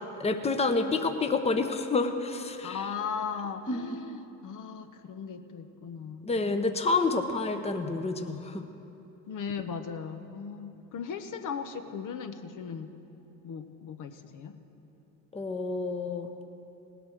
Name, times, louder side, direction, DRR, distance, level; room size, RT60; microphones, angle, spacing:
voice 1, 0.2-2.8 3.7-3.8 6.2-8.6 15.3-16.3, left 3 dB, 15° left, 7 dB, 0.9 m, -28 dB
voice 2, 2.6-6.8 9.3-13.0 13.4-14.6, left 6 dB, 50° left, 7 dB, 1.0 m, -38 dB
18.0 x 8.1 x 6.4 m, 3.0 s
hypercardioid pair, 70°, 40 cm